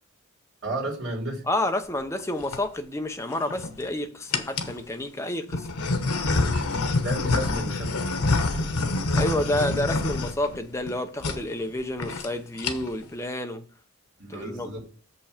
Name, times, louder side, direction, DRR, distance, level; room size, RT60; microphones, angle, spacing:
voice 1, 0.6-1.4 6.5-6.6 7.0-7.9 8.5-8.6 14.2-14.8, right 1 dB, 55° right, 3.2 m, -32 dB
voice 2, 1.5-5.7 9.2-13.6 14.3-14.7, left 1 dB, 15° left, 0.7 m, -29 dB
sound 1, 2.2-2.6 3.3-3.8 4.3-4.8 5.5-10.9 11.2-11.4 11.7-11.8 12.0-12.3 12.5-13.0, left 3 dB, 85° left, 1.1 m, -26 dB
6.8 x 5.7 x 5.0 m
head